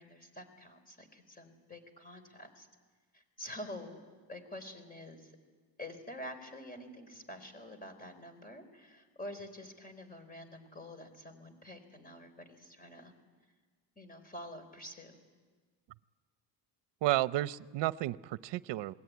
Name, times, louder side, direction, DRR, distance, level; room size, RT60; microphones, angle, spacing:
voice 1, 0.0-2.7 3.1-4.0 4.3-5.3 5.8-13.1 14.0-15.2, left 1 dB, 20° left, 9 dB, 4.2 m, -47 dB
voice 2, 17.0-18.9, right 16 dB, 75° right, 15 dB, 0.8 m, -32 dB
28.0 x 21.0 x 9.5 m, 1.5 s
cardioid pair, 110°, 43 cm